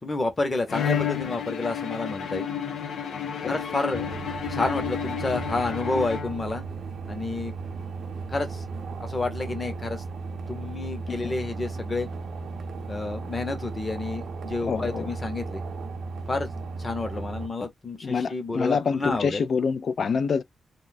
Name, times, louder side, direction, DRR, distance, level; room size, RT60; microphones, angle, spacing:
voice 1, 0.0-2.5 3.5-4.1 4.5-6.7 7.1-7.5 8.3-8.6 9.0-10.0 10.5-12.1 12.9-15.6 16.3-16.5 16.8-19.5, left 3 dB, 25° left, 0.8 m, -29 dB
Bowed string instrument, 0.7-6.7, left 8 dB, 85° left, 0.8 m, -31 dB
sound 1, 3.9-17.5, right 4 dB, 60° right, 0.5 m, -35 dB
voice 2, 14.6-15.1 18.0-20.4, left 5 dB, 50° left, 0.3 m, -26 dB
2.5 x 2.3 x 3.8 m
wide cardioid pair, 165°, 0 cm